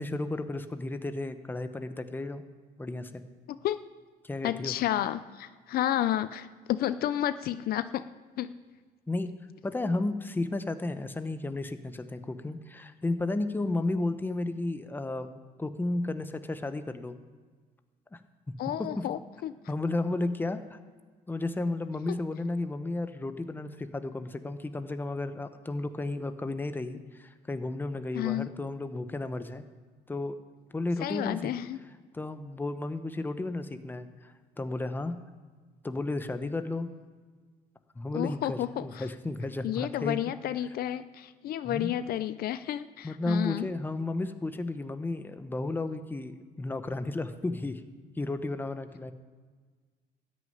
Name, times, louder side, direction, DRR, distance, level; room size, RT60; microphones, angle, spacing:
voice 1, 0.0-2.4 2.8-3.2 4.2-4.7 9.1-9.3 9.6-17.2 18.1-18.2 18.8-19.1 19.7-20.8 21.3-29.6 30.1-30.4 30.7-31.5 32.1-35.2 35.8-36.9 38.0-40.2 41.6-41.9 43.0-47.8 48.2-49.1, left 2 dB, 10° left, 10 dB, 0.8 m, -33 dB
voice 2, 4.4-8.1 8.4-8.5 18.6-19.5 28.1-28.5 31.0-31.8 38.1-39.1 39.6-43.7, left 12 dB, 65° left, 14 dB, 0.5 m, -31 dB
13.5 x 6.4 x 9.2 m, 1.5 s
cardioid pair, 110°, 17 cm